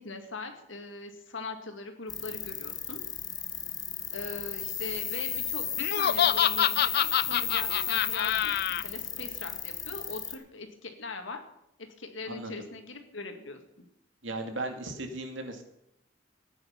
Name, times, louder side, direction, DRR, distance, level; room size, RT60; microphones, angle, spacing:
voice 1, 0.0-3.0 4.1-11.4 12.0-13.8, left 3 dB, 85° left, 5 dB, 2.0 m, -41 dB
sound 1, 2.1-10.3, left 7 dB, 20° left, 1.1 m, -34 dB
Laughter, 5.8-8.8, left 10 dB, 55° left, 0.4 m, -26 dB
voice 2, 14.2-15.6, right 2 dB, 80° right, 4 dB, 2.2 m, -36 dB
14.0 x 9.6 x 5.9 m, 0.81 s
head